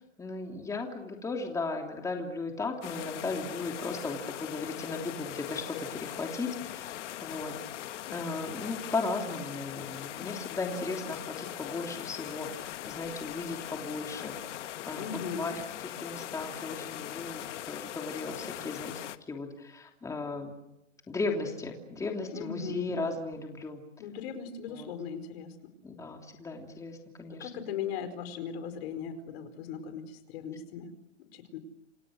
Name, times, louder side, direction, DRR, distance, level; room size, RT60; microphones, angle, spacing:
voice 1, 0.2-6.9 7.2-7.5 8.1-12.5 12.9-14.3 14.9-15.5 15.8-18.9 19.3-20.5 21.1-23.8 24.7-24.9 25.8-27.5, left 3 dB, 10° left, 2 dB, 3.1 m, -36 dB
sound 1, 2.8-19.2, left 13 dB, 65° left, 1.5 m, -40 dB
voice 2, 14.9-15.5 22.3-22.9 24.0-25.7 27.3-30.9 31.3-31.6, left 7 dB, 50° left, 10 dB, 4.9 m, -38 dB
29.5 x 28.0 x 6.5 m, 0.87 s
hypercardioid pair, 155°, 38 cm